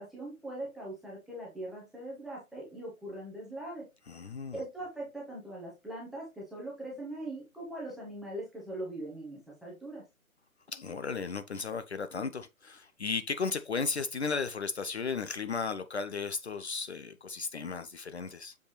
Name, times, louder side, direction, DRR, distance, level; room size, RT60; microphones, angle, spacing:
voice 1, 0.0-3.9 4.5-10.0, right 1 dB, ahead, 0.9 m, -41 dB
voice 2, 4.1-4.6 10.7-18.5, left 5 dB, 50° left, 0.7 m, -35 dB
7.0 x 5.1 x 3.1 m
figure-of-eight pair, 140°, 43 cm